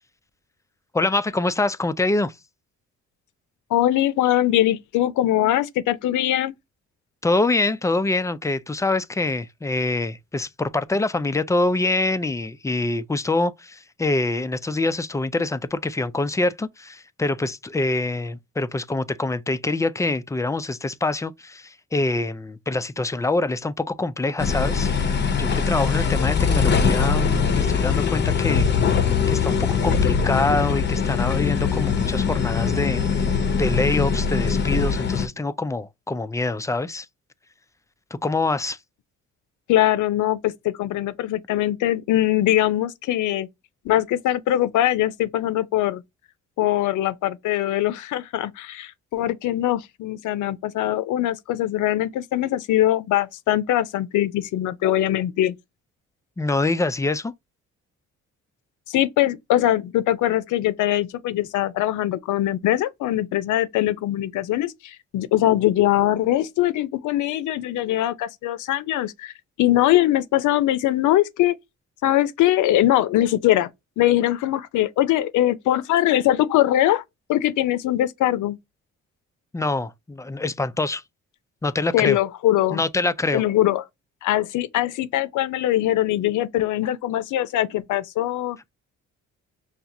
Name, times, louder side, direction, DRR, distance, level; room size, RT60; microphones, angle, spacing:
voice 1, 0.9-2.4 7.2-24.9 25.4-28.7 29.3-33.0 33.6-37.1 38.1-38.8 56.4-57.3 79.5-81.0 81.6-82.2 82.7-83.4, left 2 dB, 10° left, 0.3 m, -25 dB
voice 2, 3.7-6.5 39.7-43.5 43.8-46.0 46.6-55.6 58.9-69.3 69.6-71.6 72.0-73.7 74.0-77.0 77.3-78.6 81.9-82.8 83.3-83.8 84.2-88.6, left 13 dB, 80° left, 0.6 m, -22 dB
sound 1, 24.4-35.3, left 6 dB, 35° left, 0.6 m, -22 dB
5.7 x 2.4 x 2.7 m
cardioid pair, 90°, 30 cm